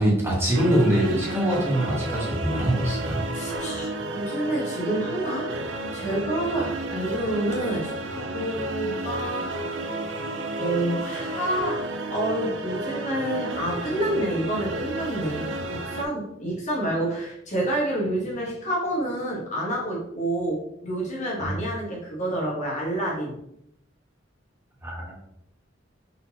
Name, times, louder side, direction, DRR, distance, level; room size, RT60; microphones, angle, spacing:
voice 1, 0.0-3.2 21.4-21.5 24.8-25.2, right 1 dB, 15° right, -4 dB, 1.2 m, -23 dB
sound 1, 0.5-16.0, right 2 dB, 80° right, 0.6 m, -32 dB
voice 2, 3.3-9.8 10.6-23.3, right 1 dB, 40° left, -3 dB, 1.3 m, -28 dB
4.3 x 3.8 x 2.8 m, 0.74 s
head